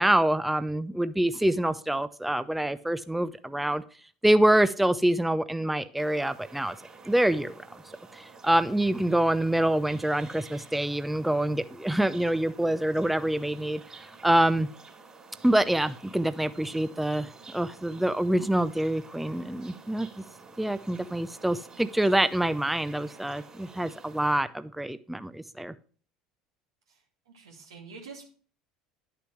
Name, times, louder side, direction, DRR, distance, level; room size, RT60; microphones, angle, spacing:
voice 1, 0.0-3.8 4.2-6.7 7.1-7.5 8.1-13.8 14.2-14.7 15.4-20.1 20.6-25.7, right 1 dB, 5° right, 13 dB, 0.5 m, -26 dB
sound 1, 6.0-24.4, right 4 dB, 25° right, 3.1 m, -50 dB
voice 2, 27.3-28.2, right 4 dB, 85° right, 0 dB, 2.4 m, -46 dB
11.0 x 6.8 x 3.2 m, 0.43 s
hypercardioid pair, 70°, 3 cm